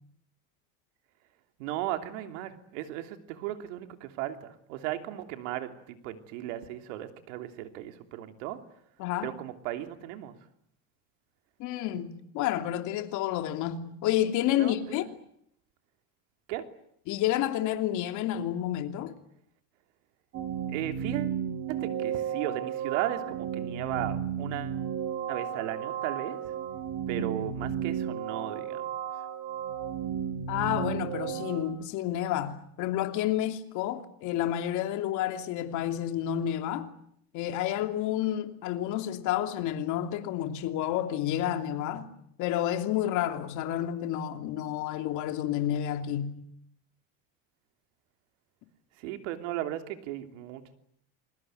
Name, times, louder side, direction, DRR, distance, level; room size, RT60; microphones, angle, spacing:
voice 1, 1.6-8.6 9.2-10.4 14.5-15.1 16.5-16.7 20.7-21.4 21.7-24.8 25.3-26.5 27.1-28.9 49.0-50.6, right 13 dB, 85° right, 3.1 m, -36 dB
voice 2, 9.0-9.3 11.6-15.0 17.1-19.1 27.2-27.3 30.5-36.9 37.3-42.1 42.4-46.4, left 12 dB, 55° left, 2.9 m, -30 dB
sound 1, 20.3-31.6, right 8 dB, 40° right, 4.9 m, -33 dB
28.0 x 21.0 x 9.3 m
cardioid pair, 150°, 36 cm